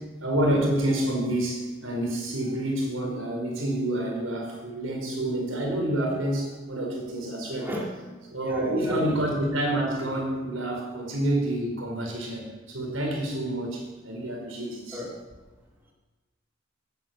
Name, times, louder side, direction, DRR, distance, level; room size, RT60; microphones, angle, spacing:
voice 1, 0.2-7.7 8.3-15.0, right 1 dB, 80° right, 0 dB, 5.0 m, -28 dB
voice 2, 7.6-8.1 8.4-9.2 14.9-15.1, equal, 10° right, -2 dB, 2.4 m, -35 dB
16.0 x 9.3 x 7.7 m, 1.2 s
head